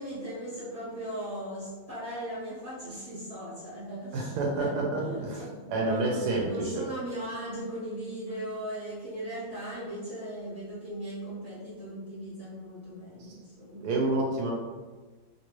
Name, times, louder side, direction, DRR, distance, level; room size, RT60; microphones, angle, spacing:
voice 1, 0.0-13.9, right 1 dB, 30° left, -10 dB, 0.8 m, -38 dB
voice 2, 4.1-5.4 5.7-6.8 13.8-14.5, right 2 dB, 70° right, -2 dB, 1.1 m, -28 dB
3.0 x 2.7 x 3.0 m, 1.4 s
omnidirectional pair, 1.9 m